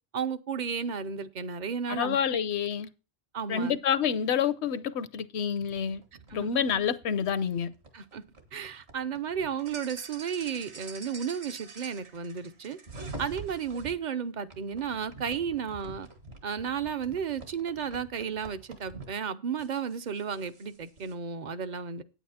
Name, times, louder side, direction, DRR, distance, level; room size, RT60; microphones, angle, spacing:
voice 1, 0.1-2.2 3.3-3.8 6.3-6.5 7.9-8.2 8.5-12.8 13.2-16.1 16.4-22.0, right 7 dB, 50° right, 0.7 m, -33 dB
voice 2, 1.9-2.9 3.5-6.0 6.3-7.7, left 7 dB, 75° left, 0.9 m, -28 dB
sound 1, 5.6-13.9 14.5-19.1 19.6-21.1, right 3 dB, 65° right, 1.9 m, -46 dB
9.1 x 8.6 x 4.2 m
omnidirectional pair, 1.2 m